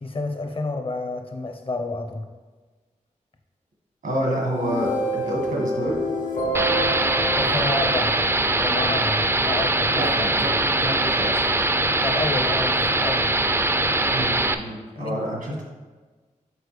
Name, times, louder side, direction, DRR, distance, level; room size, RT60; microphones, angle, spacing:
voice 1, 0.0-2.2 7.4-8.2 8.5-10.0 12.0-13.3 15.0-15.2 15.5-15.6, left 2 dB, 40° left, 5 dB, 0.8 m, -29 dB
voice 2, 4.0-5.9 9.9-11.7 14.1-15.6, equal, 85° right, -2 dB, 1.5 m, -28 dB
sound 1, 4.4-8.7, right 1 dB, 75° left, 1.6 m, -28 dB
sound 2, 6.5-14.5, right 2 dB, 20° right, 0.4 m, -22 dB
6.6 x 4.4 x 3.3 m, 1.3 s
cardioid pair, 60°, 14 cm